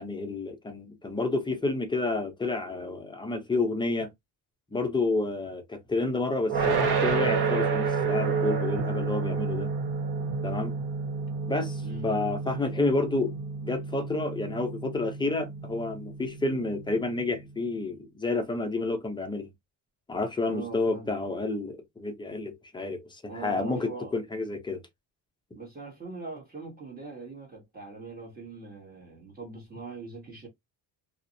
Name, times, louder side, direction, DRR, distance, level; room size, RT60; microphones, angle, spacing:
voice 1, 0.0-4.1 4.7-9.7 10.4-10.7 11.5-13.3 13.6-19.5 20.1-24.8, left 3 dB, 10° left, 0.6 m, -30 dB
sound 1, 6.5-17.5, right 5 dB, 65° right, 1.1 m, -30 dB
voice 2, 11.8-12.3 20.5-21.2 23.3-24.1 25.5-30.5, right 3 dB, 20° right, 1.1 m, -41 dB
2.5 x 2.0 x 2.6 m
cardioid pair, 110°, 41 cm